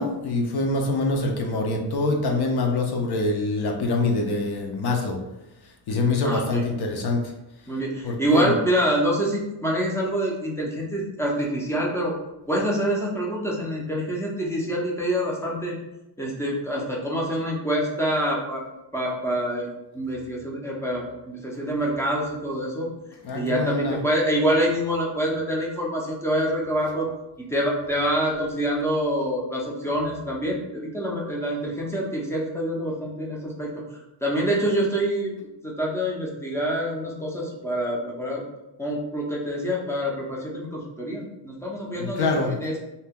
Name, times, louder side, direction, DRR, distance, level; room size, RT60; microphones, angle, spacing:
voice 1, 0.0-5.2 5.9-7.3 8.0-8.6 23.2-24.0 41.9-42.5, left 2 dB, 55° left, 2 dB, 0.6 m, -25 dB
voice 2, 6.2-6.6 7.7-12.2 12.5-15.8 16.2-18.6 18.9-19.7 19.9-22.9 23.3-27.1 27.5-33.7 34.2-38.4 38.8-42.8, equal, 5° left, -3 dB, 0.4 m, -26 dB
2.7 x 2.2 x 3.5 m, 0.94 s
cardioid pair, 145°, 48 cm